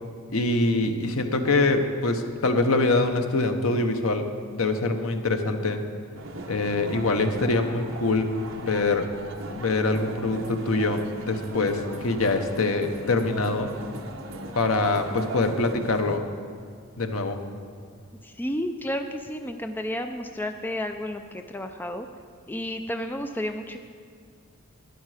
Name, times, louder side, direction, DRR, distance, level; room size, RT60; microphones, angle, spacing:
voice 1, 0.3-4.3 4.5-5.8 6.5-9.1 9.5-13.7 14.5-16.2 17.0-17.4, left 2 dB, 75° left, 6 dB, 0.9 m, -24 dB
sound 1, 6.2-16.2, right 2 dB, 65° right, 1.0 m, -39 dB
voice 2, 18.2-22.1 22.5-23.8, left 1 dB, 10° left, 6 dB, 0.4 m, -31 dB
12.0 x 10.0 x 4.9 m, 2.1 s
head